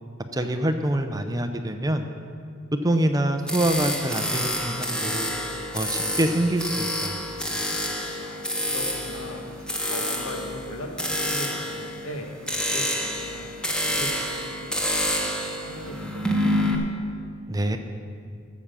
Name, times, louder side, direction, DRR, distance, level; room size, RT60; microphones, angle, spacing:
voice 1, 0.3-2.1 2.8-5.3 5.7-7.2 17.5-17.8, right 1 dB, 15° right, 7 dB, 0.5 m, -25 dB
sound 1, 3.5-16.8, left 1 dB, 5° left, 0.9 m, -28 dB
voice 2, 8.2-15.2 15.6-16.7, equal, 90° left, 3 dB, 1.6 m, -39 dB
12.5 x 7.3 x 6.8 m, 2.3 s
head